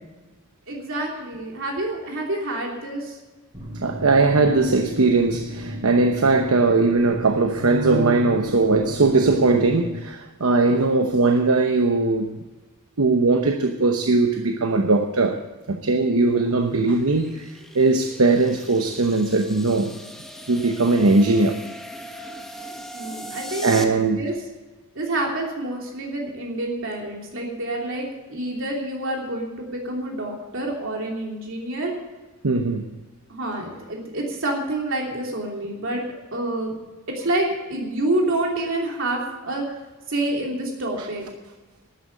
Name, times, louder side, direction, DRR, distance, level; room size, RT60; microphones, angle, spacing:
voice 1, 0.7-3.2 22.9-24.4 24.9-31.9 33.3-36.0 36.3-36.7 37.1-39.6 40.1-41.2, right 1 dB, 65° right, -1 dB, 3.1 m, -28 dB
sound 1, 3.5-9.9, left 1 dB, 25° right, 4.1 m, -35 dB
voice 2, 3.8-12.4 13.0-15.4 15.7-20.0 20.5-21.6 23.6-24.2 32.4-32.8, right 3 dB, 80° right, 4 dB, 0.9 m, -19 dB
sound 2, 16.0-23.8, equal, ahead, 1.3 m, -39 dB
13.0 x 9.3 x 8.2 m, 1.2 s
head